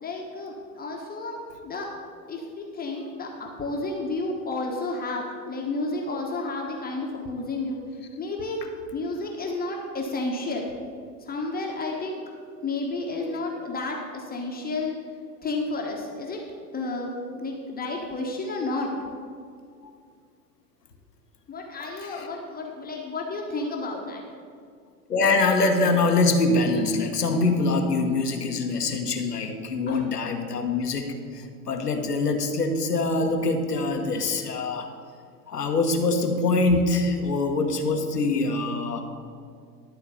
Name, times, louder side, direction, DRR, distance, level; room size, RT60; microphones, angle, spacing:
voice 1, 0.0-1.9 2.3-7.8 8.2-8.6 8.9-10.7 11.3-12.2 12.6-14.9 15.4-16.4 16.7-18.9 21.5-24.2 29.9-30.0, left 2 dB, 20° left, 0 dB, 1.2 m, -31 dB
voice 2, 21.8-22.3 25.1-34.9 35.5-39.0, left 3 dB, 85° left, 4 dB, 1.2 m, -24 dB
12.0 x 4.5 x 6.9 m, 2.2 s
figure-of-eight pair, 85°, 46 cm